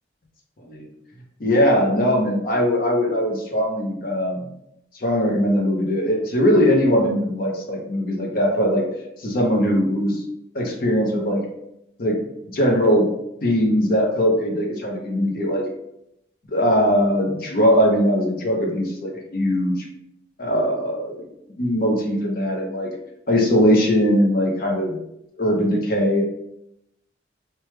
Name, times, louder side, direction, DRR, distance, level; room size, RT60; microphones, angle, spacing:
voice 1, 1.4-4.4 5.0-8.8 9.2-10.2 10.5-11.4 12.0-13.1 13.4-15.6 16.5-19.8 20.4-21.2 21.6-22.9 23.3-25.0 25.4-26.2, equal, 50° left, 0 dB, 0.6 m, -20 dB
3.2 x 2.2 x 3.1 m, 0.81 s
head